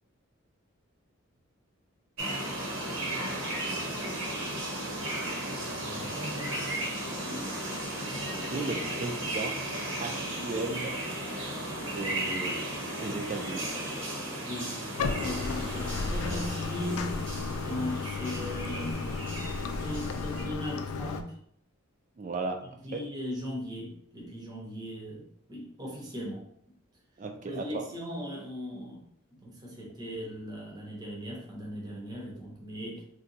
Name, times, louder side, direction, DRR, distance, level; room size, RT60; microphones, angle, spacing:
sound 1, 2.2-20.5, right 1 dB, 65° right, 0.9 m, -35 dB
voice 1, 3.0-4.3 8.4-9.6 10.0-11.0 11.8-12.7 13.0-13.7 22.2-22.6 22.9-23.0 27.2-27.8, right 3 dB, 35° right, 4 dB, 0.3 m, -36 dB
voice 2, 5.7-6.9 7.2-7.5 14.4-17.2 17.6-21.3 22.8-26.4 27.4-29.0 29.3-33.0, equal, 20° right, -3 dB, 0.7 m, -38 dB
Bathtub (filling or washing), 15.0-21.2, left 4 dB, 90° left, 0.3 m, -33 dB
2.6 x 2.2 x 3.9 m, 0.66 s
head